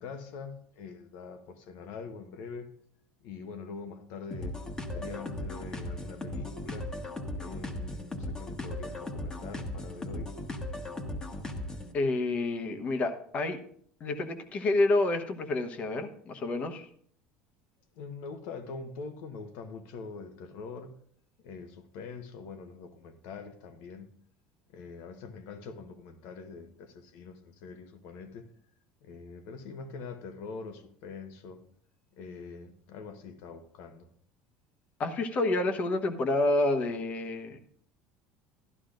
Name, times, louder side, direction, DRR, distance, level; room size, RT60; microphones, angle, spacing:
voice 1, 0.0-2.7 3.2-4.6 4.9-6.9 7.3-10.3 17.9-21.0 21.4-24.1 24.7-28.5 29.0-31.6 32.1-34.1, left 4 dB, 70° left, 1.1 m, -44 dB
sound 1, 4.3-11.9, left 1 dB, 20° left, 1.2 m, -37 dB
voice 2, 11.9-13.6 14.0-16.9 35.0-37.6, left 2 dB, 40° left, 1.1 m, -28 dB
12.5 x 11.5 x 2.6 m
supercardioid pair, 120°, 4 cm